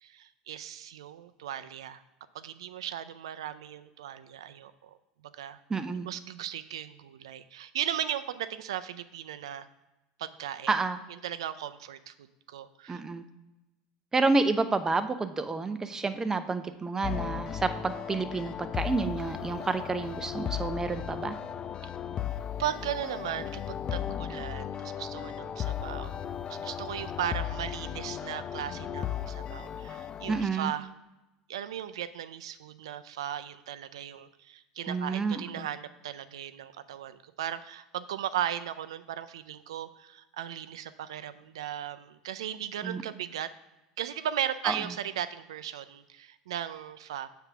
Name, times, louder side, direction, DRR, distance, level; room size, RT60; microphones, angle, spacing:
voice 1, 0.0-2.0 2.3-4.9 5.3-5.6 6.0-9.7 10.2-10.8 11.2-13.0 22.6-26.2 26.5-30.9 31.5-43.5 44.0-47.3, right 10 dB, 85° right, 13 dB, 0.4 m, -37 dB
voice 2, 5.7-6.1 10.7-11.0 12.9-13.2 14.1-21.4 30.3-30.7 34.9-35.7 42.8-43.0 44.6-44.8, right 3 dB, 20° right, 10 dB, 0.6 m, -29 dB
sound 1, 17.0-30.5, left 9 dB, 35° left, 0.3 m, -36 dB
7.2 x 3.4 x 5.8 m, 1.0 s
hypercardioid pair, 95°, 3 cm